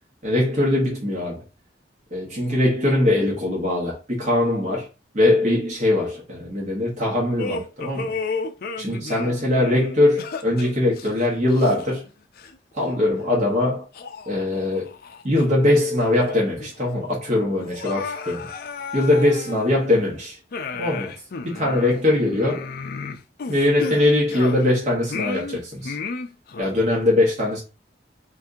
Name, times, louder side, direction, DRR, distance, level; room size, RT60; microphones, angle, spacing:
voice 1, 0.2-1.4 2.1-4.9 5.1-8.1 8.8-12.0 12.7-13.9 14.3-14.9 15.2-18.5 18.9-20.4 20.8-21.1 21.4-22.7 23.5-25.9 26.6-27.6, left 1 dB, 40° right, 1.1 m, -21 dB
sound 1, 7.4-12.1 12.4-12.6 13.2-13.3 13.9-15.2 15.6-15.7 16.1-16.7 17.0-17.1 17.6-20.0 20.5-24.7 25.1-26.6, left 4 dB, 55° left, 0.4 m, -33 dB
2.6 x 2.6 x 3.6 m
head